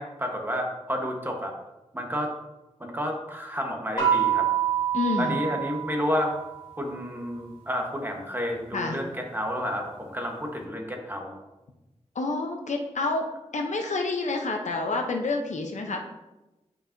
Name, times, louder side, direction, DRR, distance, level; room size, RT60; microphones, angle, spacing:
voice 1, 0.0-1.5 1.9-2.3 2.8-4.5 5.2-6.4 6.8-11.4, equal, 15° right, 1 dB, 1.1 m, -30 dB
sound 1, 4.0-6.7, right 9 dB, 40° left, 1.9 m, -26 dB
voice 2, 4.9-5.4 8.7-9.0 12.1-13.3 13.5-16.1, left 3 dB, 75° left, 3 dB, 0.6 m, -28 dB
8.5 x 4.7 x 2.6 m, 1.0 s
wide cardioid pair, 80°, 12 cm